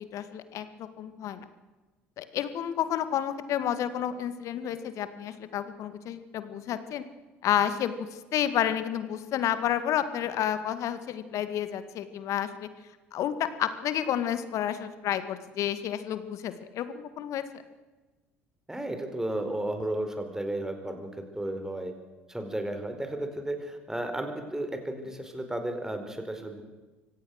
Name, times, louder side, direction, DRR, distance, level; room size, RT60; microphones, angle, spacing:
voice 1, 0.1-1.4 2.2-7.0 7.4-12.7 13.1-17.4, left 10 dB, 55° left, 11 dB, 2.0 m, -30 dB
voice 2, 18.7-21.9 22.3-26.6, right 1 dB, 10° right, 6 dB, 4.6 m, -33 dB
24.5 x 17.0 x 6.5 m, 1.2 s
hypercardioid pair, 60°, 6 cm